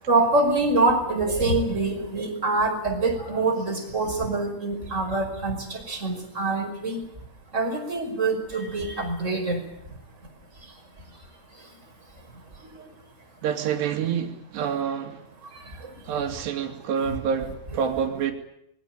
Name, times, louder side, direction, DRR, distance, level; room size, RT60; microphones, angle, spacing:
voice 1, 0.0-7.0 7.5-9.6 9.9-10.0 10.6-10.8 11.1-11.3 11.5-11.8 12.1-12.9 15.4-16.1, right 2 dB, 15° right, 2 dB, 5.6 m, -26 dB
voice 2, 13.4-15.3 16.1-18.3, right 7 dB, 80° right, 4 dB, 4.6 m, -27 dB
25.5 x 21.5 x 9.0 m, 0.76 s
omnidirectional pair, 4.8 m